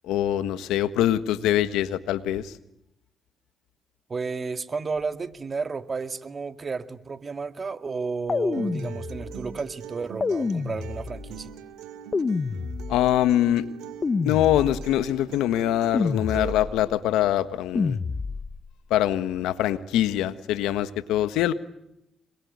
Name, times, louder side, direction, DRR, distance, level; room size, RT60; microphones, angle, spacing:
voice 1, 0.0-2.5 12.9-13.7 14.2-18.0 18.9-21.5, left 12 dB, 85° left, 12 dB, 1.5 m, -23 dB
voice 2, 4.1-11.5, right 4 dB, 40° right, 9 dB, 2.2 m, -32 dB
sound 1, 8.3-9.5 10.2-11.4 12.1-13.2 14.0-15.0 15.9-16.9 17.7-18.6, left 4 dB, 40° left, 1.4 m, -28 dB
Acoustic guitar, 8.5-16.5, right 9 dB, 85° right, 2.9 m, -41 dB
26.5 x 22.5 x 9.6 m, 0.82 s
supercardioid pair, 65°, 0 cm